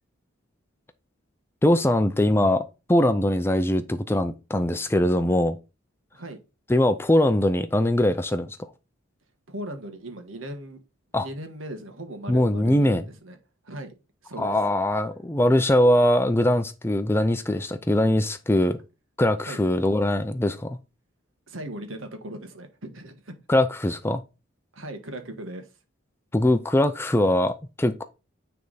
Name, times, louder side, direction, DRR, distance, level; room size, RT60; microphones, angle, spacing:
voice 1, 1.6-5.6 6.7-8.6 11.1-11.3 12.3-13.0 14.4-18.8 19.2-20.8 23.5-24.2 26.3-28.0, left 1 dB, 10° left, 0.4 m, -22 dB
voice 2, 9.5-10.8 11.2-13.4 13.6-13.9 14.2-14.6 19.4-19.6 21.5-23.4 24.7-25.7, right 1 dB, 80° right, 1.5 m, -38 dB
9.5 x 3.5 x 4.1 m
head